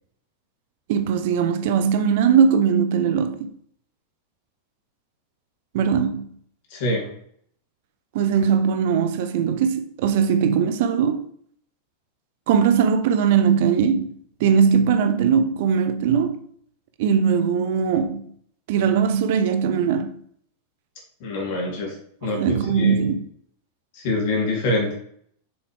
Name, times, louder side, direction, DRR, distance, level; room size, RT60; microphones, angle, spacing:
voice 1, 0.9-3.5 5.7-6.2 8.1-11.3 12.5-16.4 17.0-18.3 18.7-20.2 22.2-23.2, right 7 dB, 50° right, 0.7 m, -20 dB
voice 2, 6.7-7.1 21.2-21.9 22.2-22.4 22.7-23.0 23.9-24.9, left 2 dB, 50° left, 3.1 m, -25 dB
7.1 x 7.0 x 3.4 m
figure-of-eight pair, 90°, 0 cm